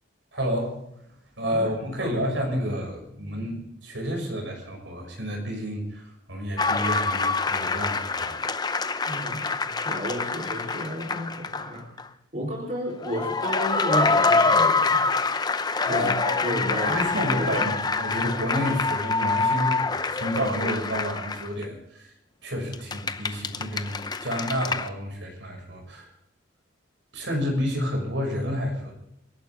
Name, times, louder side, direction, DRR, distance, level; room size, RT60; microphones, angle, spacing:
voice 1, 0.3-0.7 1.4-8.4 15.8-22.1 22.4-26.1 27.1-28.9, equal, 70° right, 2 dB, 6.1 m, -30 dB
voice 2, 1.5-2.3 9.1-9.4 9.7-11.9 12.3-15.0 15.9-17.8, equal, 40° right, -3 dB, 3.7 m, -32 dB
sound 1, 6.6-11.7 12.0-12.1 13.0-21.6 22.7-24.9, left 4 dB, 20° left, 0.7 m, -26 dB
29.0 x 11.5 x 3.6 m, 0.81 s
head